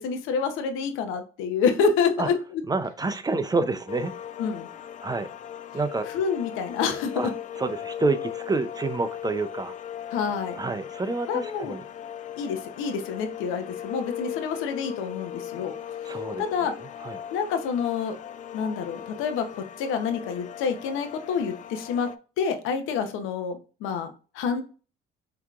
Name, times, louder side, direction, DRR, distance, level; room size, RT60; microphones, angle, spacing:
voice 1, 0.0-2.6 4.4-4.7 6.1-7.3 10.1-10.6 11.3-11.7 12.4-15.7 16.4-16.8 17.3-18.2 18.5-19.5 19.8-22.1 22.4-24.6, left 6 dB, 90° left, 7 dB, 0.8 m, -27 dB
voice 2, 2.7-4.1 5.0-5.3 5.7-6.1 7.2-7.3 7.6-9.7 10.6-11.8 16.0-16.5 17.0-17.2, right 3 dB, 20° right, 11 dB, 0.5 m, -28 dB
sound 1, 3.9-22.2, left 10 dB, 40° left, 0.4 m, -38 dB
5.8 x 2.9 x 2.4 m, 0.35 s
cardioid pair, 90°, 20 cm